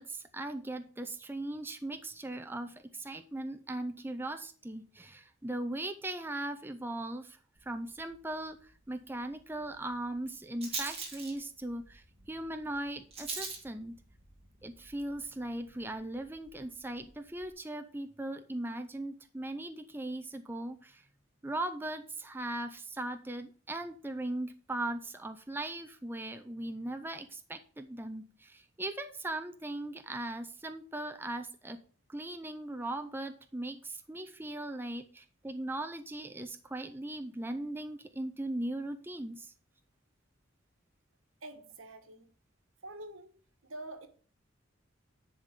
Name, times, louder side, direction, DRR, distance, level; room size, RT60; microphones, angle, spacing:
voice 1, 0.0-7.4 7.7-8.6 8.9-14.0 14.6-21.0 21.4-31.8 32.1-39.5, right 1 dB, 10° right, 0.5 m, -39 dB
Rattle, 7.6-17.5, right 4 dB, 30° right, 2.3 m, -46 dB
voice 2, 41.4-42.3 42.8-43.3 43.6-44.1, right 1 dB, 80° right, 1.4 m, -46 dB
10.0 x 3.8 x 6.5 m
head